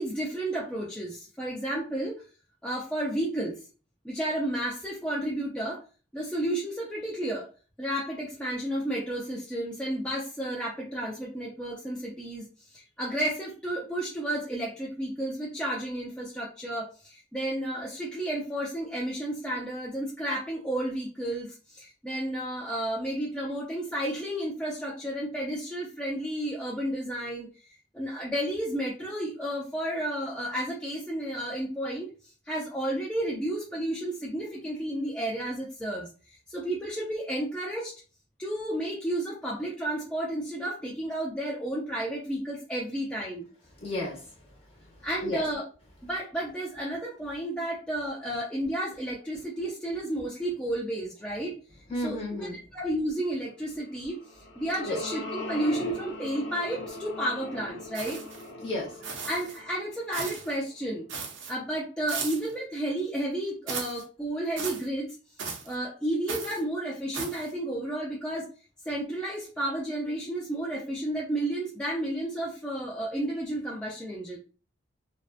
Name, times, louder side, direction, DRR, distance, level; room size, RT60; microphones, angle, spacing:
voice 1, 0.0-2.2 2.6-3.6 4.0-5.8 6.1-7.5 7.8-32.1 32.5-37.9 38.4-43.5 45.0-45.6 46.0-51.5 52.0-54.2 54.6-58.2 59.2-61.1 61.5-65.2 65.7-68.5 68.8-74.4, right 1 dB, 5° left, -4 dB, 0.3 m, -32 dB
voice 2, 43.8-44.2 45.2-45.4 51.9-52.6 54.8-55.0 58.6-59.0, left 2 dB, 30° left, -2 dB, 1.0 m, -32 dB
sound 1, 54.1-60.6, left 1 dB, 65° left, 0.7 m, -40 dB
sound 2, 57.9-58.5 59.0-59.6 60.1-60.5 61.1-61.5 62.1-62.5 63.7-64.0 64.6-64.9 65.4-65.8 66.3-66.6 67.1-67.5, right 5 dB, 75° right, 0.5 m, -36 dB
2.5 x 2.1 x 2.4 m, 0.36 s
head